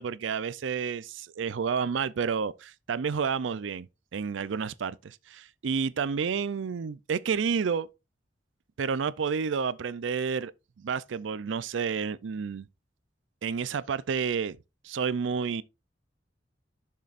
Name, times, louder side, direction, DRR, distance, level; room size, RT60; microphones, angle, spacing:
voice 1, 0.0-7.9 8.8-10.5 10.8-12.7 13.4-14.6 14.8-15.6, right 6 dB, 85° right, 0.4 m, -30 dB
11.5 x 6.6 x 2.5 m
head